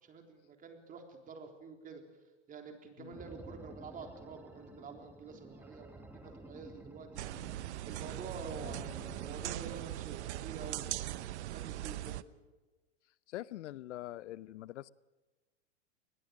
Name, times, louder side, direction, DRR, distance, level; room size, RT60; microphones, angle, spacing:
voice 1, 0.1-2.0 2.5-7.2 7.8-12.2, right 5 dB, 25° right, 4 dB, 3.7 m, -48 dB
sound 1, 3.1-9.5, right 1 dB, 5° right, 2.8 m, -52 dB
sound 2, 7.2-12.2, right 14 dB, 70° right, 0.9 m, -40 dB
voice 2, 13.3-14.9, left 14 dB, 80° left, 21 dB, 0.7 m, -44 dB
22.5 x 20.0 x 6.4 m, 1.2 s
hypercardioid pair, 135°, 35 cm